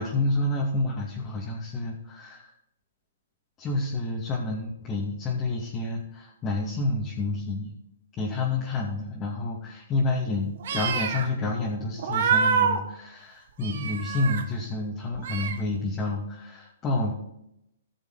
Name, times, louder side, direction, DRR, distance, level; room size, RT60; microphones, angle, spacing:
voice 1, 0.0-2.5 3.6-7.7 8.2-17.1, left 2 dB, 20° left, -4 dB, 2.4 m, -29 dB
sound 1, 10.6-11.3 12.0-12.8 13.6-14.4 15.1-15.7, right 6 dB, 55° right, 1.6 m, -26 dB
15.5 x 6.8 x 4.1 m, 0.81 s
hypercardioid pair, 130°, 0 cm